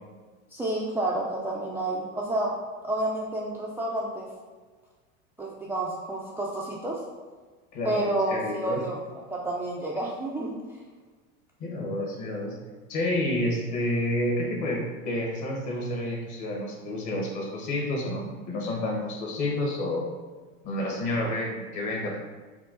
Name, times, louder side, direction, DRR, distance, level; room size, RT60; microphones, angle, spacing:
voice 1, 0.5-2.6 2.8-4.3 5.4-7.0 7.8-9.0 9.3-10.8, right 1 dB, 5° right, -5 dB, 0.4 m, -30 dB
voice 2, 7.7-8.8 11.6-12.5 12.9-20.0 20.6-22.2, left 1 dB, 45° left, -1 dB, 1.5 m, -29 dB
4.5 x 2.4 x 3.9 m, 1.4 s
hypercardioid pair, 95°, 40 cm